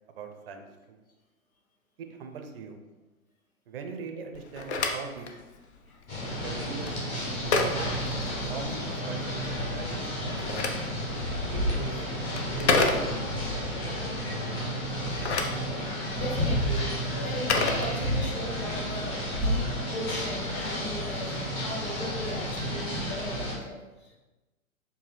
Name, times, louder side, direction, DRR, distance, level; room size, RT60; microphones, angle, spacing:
voice 1, 0.1-1.0 2.0-2.8 3.7-5.3 6.4-7.2 7.6-7.9 8.5-9.4 9.7-10.6 11.5-12.0 12.5-13.4 13.7-13.8, right 5 dB, 40° right, 5 dB, 0.6 m, -41 dB
Telephone, 4.3-8.9 10.1-13.5 14.9-18.5, left 3 dB, 50° left, 0.6 m, -31 dB
sound 1, 6.1-23.5, equal, 15° left, 0.9 m, -31 dB
voice 2, 16.1-24.2, equal, 75° left, -2 dB, 1.3 m, -38 dB
4.7 x 2.6 x 3.2 m, 1.1 s
figure-of-eight pair, 120°, 43 cm